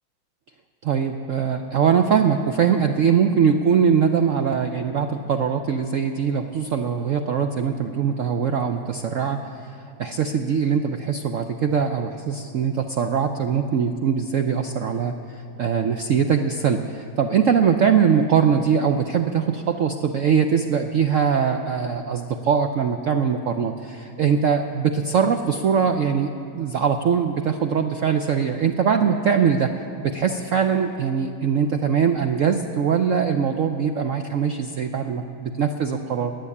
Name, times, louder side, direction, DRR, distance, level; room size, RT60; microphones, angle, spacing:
voice 1, 0.8-29.7 30.0-36.4, right 7 dB, 75° right, 6 dB, 0.7 m, -22 dB
21.0 x 8.0 x 8.4 m, 2.5 s
omnidirectional pair, 2.1 m